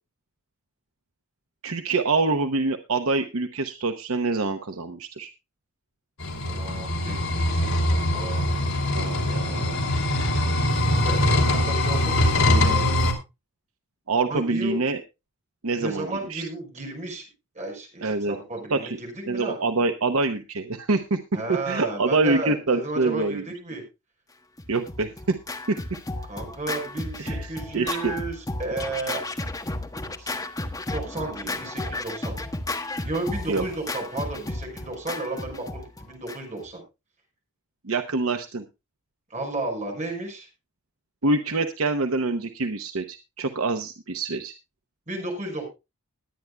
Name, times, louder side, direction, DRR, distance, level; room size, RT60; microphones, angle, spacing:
voice 1, 1.6-5.3 8.9-9.8 14.1-15.0 15.6-16.5 18.0-18.4 18.7-19.0 19.3-21.2 21.5-23.4 24.7-25.4 25.7-25.8 27.2-28.1 33.5-33.6 37.8-38.6 41.2-44.5, right 3 dB, 70° right, 7 dB, 0.9 m, -25 dB
sound 1, 6.2-13.1, left 1 dB, 70° left, 3.5 m, -22 dB
voice 2, 6.4-8.4 11.0-12.9 14.3-14.8 15.8-17.2 17.5-19.6 21.3-23.8 26.3-29.2 30.2-30.3 30.9-32.4 33.0-36.8 39.3-40.5 45.1-45.7, right 2 dB, 35° right, 2 dB, 5.4 m, -33 dB
Scratching (performance technique), 24.6-36.7, left 2 dB, 15° left, 1.2 m, -33 dB
20.5 x 9.4 x 2.3 m, 0.26 s
head